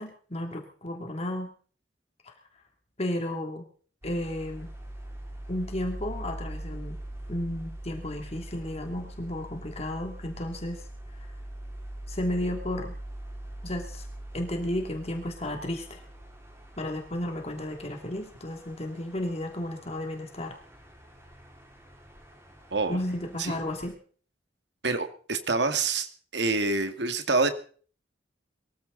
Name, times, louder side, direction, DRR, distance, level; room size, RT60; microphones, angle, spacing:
voice 1, 0.0-1.5 2.2-2.3 3.0-3.7 4.0-4.7 5.5-7.0 7.3-10.8 11.1-11.3 12.1-13.0 13.6-14.1 14.3-16.0 16.8-20.5 22.9-24.0, left 1 dB, 35° left, 3 dB, 2.7 m, -33 dB
sound 1, 4.0-23.9, right 1 dB, 15° right, 4.9 m, -43 dB
voice 2, 24.8-27.5, right 3 dB, 65° right, 8 dB, 2.1 m, -27 dB
23.0 x 15.0 x 4.0 m, 0.43 s
head